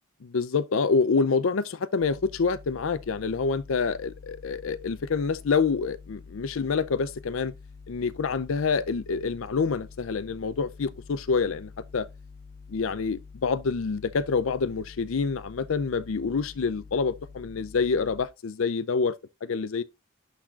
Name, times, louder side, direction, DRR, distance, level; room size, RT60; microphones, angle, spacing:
voice 1, 0.3-7.5 7.9-12.1 12.7-19.1 19.4-19.8, left 5 dB, 70° left, 0.5 m, -27 dB
sound 1, 2.0-18.3, left 4 dB, 40° left, 1.0 m, -47 dB
11.5 x 4.2 x 2.4 m
head